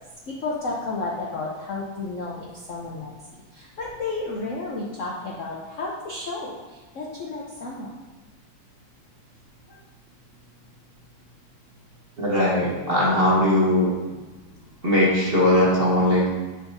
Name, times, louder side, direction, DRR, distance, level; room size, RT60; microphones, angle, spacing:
voice 1, 0.4-3.1 3.5-6.5 7.0-7.9, left 3 dB, 60° left, -3 dB, 0.8 m, -31 dB
voice 2, 12.2-13.9 14.8-16.3, left 1 dB, 35° right, -5 dB, 1.0 m, -19 dB
10.5 x 4.4 x 2.6 m, 1.3 s
omnidirectional pair, 2.3 m